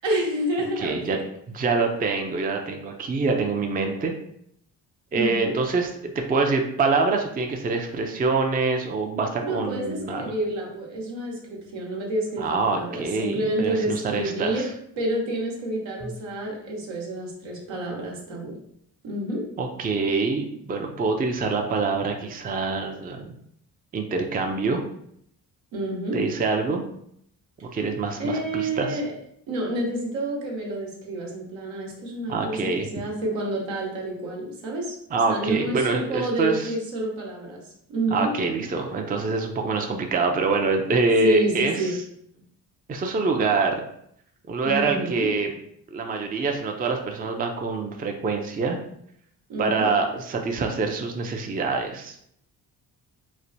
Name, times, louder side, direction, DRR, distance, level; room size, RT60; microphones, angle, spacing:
voice 1, 0.0-1.2 5.1-5.6 9.4-14.7 15.0-18.5 19.0-19.4 25.7-26.2 28.2-29.1 29.5-34.9 35.3-37.6 37.9-38.3 41.2-42.0 44.6-45.3 49.5-49.9, right 1 dB, 75° right, -2 dB, 1.0 m, -29 dB
voice 2, 0.8-1.2 1.5-4.1 5.1-10.3 12.4-14.7 16.0-16.1 19.6-23.3 23.9-24.8 26.1-26.8 27.7-29.0 32.3-32.9 35.1-36.7 38.1-41.9 42.9-43.8 44.5-45.5 45.9-48.8 49.6-52.1, right 4 dB, 20° right, 3 dB, 0.4 m, -25 dB
3.2 x 2.1 x 2.7 m, 0.70 s
hypercardioid pair, 50°, 46 cm